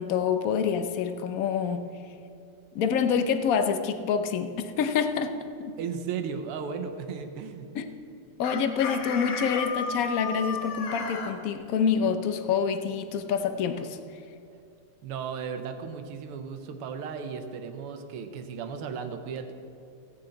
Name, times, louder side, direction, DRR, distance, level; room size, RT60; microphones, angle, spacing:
voice 1, 0.0-1.8 2.7-5.8 7.7-7.9 8.4-14.0, left 6 dB, 65° left, 8 dB, 0.8 m, -27 dB
voice 2, 5.8-7.7 15.0-19.5, right 6 dB, 90° right, 7 dB, 1.8 m, -35 dB
Chicken rooster, 8.4-11.3, left 4 dB, 90° left, 2.1 m, -33 dB
16.5 x 9.7 x 3.9 m, 2.6 s
omnidirectional pair, 2.4 m